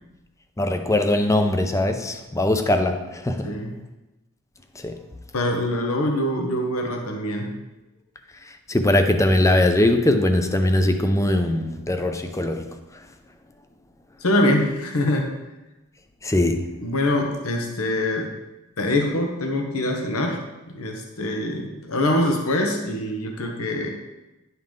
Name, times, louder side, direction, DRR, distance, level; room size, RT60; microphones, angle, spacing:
voice 1, 0.6-3.5 4.8-5.0 8.7-12.7 16.2-16.6, left 1 dB, 15° left, 7 dB, 0.6 m, -21 dB
voice 2, 3.4-3.7 5.3-7.5 14.2-15.3 16.8-18.4 18.8-23.9, left 1 dB, 80° left, 2 dB, 1.0 m, -24 dB
10.5 x 5.6 x 3.7 m, 1.0 s
head